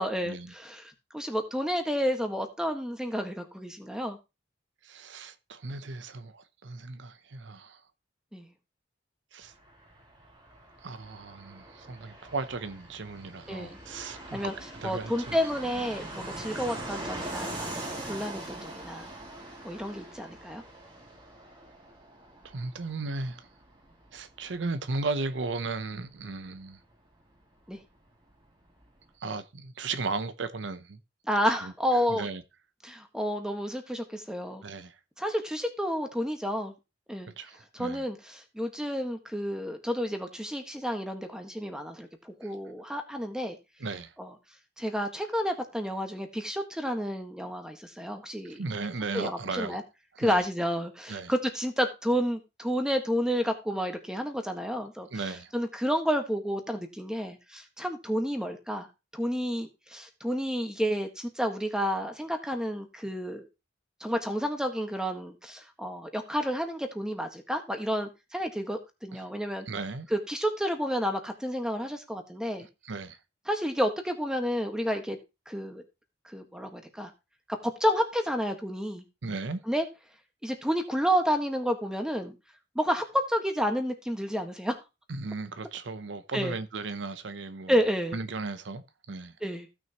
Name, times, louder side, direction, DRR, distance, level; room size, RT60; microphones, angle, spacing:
voice 1, 0.0-4.2 8.3-8.5 13.5-13.8 14.3-14.5 14.8-19.1 19.6-20.6 27.7-27.8 31.3-32.3 32.8-34.6 35.2-36.7 37.1-37.3 37.7-43.6 44.2-44.3 44.8-48.6 49.1-49.8 50.2-55.1 55.5-58.9 59.1-63.5 64.0-69.7 70.1-72.7 73.5-75.2 75.5-75.8 76.3-77.1 77.6-79.0 79.7-79.9 80.4-82.3 82.7-84.8 86.3-86.6 87.7-88.2 89.4-89.7, equal, 5° right, 1.4 m, -30 dB
voice 2, 4.8-7.8 9.3-9.5 10.8-14.5 14.8-15.4 19.0-19.2 22.4-23.5 24.1-26.8 29.2-31.0 31.6-31.7 32.1-32.4 34.6-35.0 37.4-38.1 42.4-42.6 43.8-44.1 48.4-49.8 50.2-50.4 51.1-51.3 55.1-55.5 69.1-69.2 69.7-70.1 72.8-73.2 79.2-79.6 85.1-87.8 88.1-88.8 89.1-89.3, right 3 dB, 80° right, 0.7 m, -36 dB
Fixed-wing aircraft airplane, 9.4-27.8 28.1-28.2 28.3-29.1, right 1 dB, 25° right, 2.5 m, -42 dB
15.5 x 6.2 x 2.9 m
head